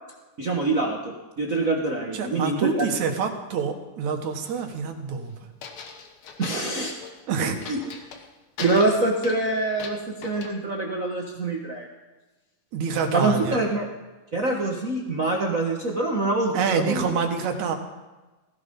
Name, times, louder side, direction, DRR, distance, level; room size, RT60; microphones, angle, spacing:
voice 1, 0.4-2.9 6.4-6.9 7.7-7.8 8.6-11.9 13.1-13.9 14.3-16.5 16.9-17.1, right 2 dB, 40° right, 0 dB, 1.3 m, -25 dB
voice 2, 2.1-5.4 7.3-7.6 12.7-13.6 16.5-17.8, right 6 dB, 80° right, 4 dB, 2.9 m, -26 dB
sound 1, 4.4-4.8 5.6-7.2 7.6-8.3 8.6-10.5, left 5 dB, 70° left, 2.5 m, -39 dB
16.0 x 15.5 x 5.4 m, 1.2 s
omnidirectional pair, 3.3 m